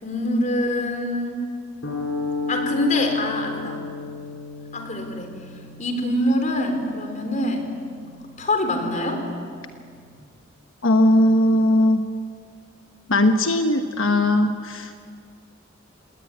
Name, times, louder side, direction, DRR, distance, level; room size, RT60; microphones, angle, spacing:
voice 1, 0.0-1.4 2.5-3.8 4.7-5.3 5.8-7.7 8.4-9.2, left 1 dB, 40° left, 5 dB, 4.0 m, -24 dB
sound 1, 1.8-10.2, left 3 dB, 60° left, 5.7 m, -34 dB
voice 2, 10.8-12.0 13.1-14.9, left 1 dB, 80° left, 6 dB, 1.2 m, -18 dB
29.5 x 18.0 x 9.6 m, 2.2 s
head